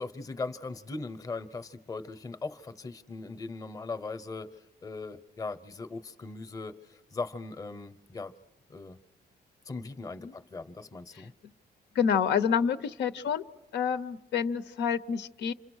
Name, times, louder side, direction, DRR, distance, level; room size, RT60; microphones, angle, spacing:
voice 1, 0.0-8.3 8.7-9.0 9.6-11.3, left 3 dB, 20° left, 12 dB, 0.8 m, -39 dB
voice 2, 11.9-13.4 13.7-15.5, left 7 dB, 90° left, 12 dB, 0.8 m, -28 dB
28.0 x 27.0 x 6.3 m, 1.1 s
cardioid pair, 160°, 18 cm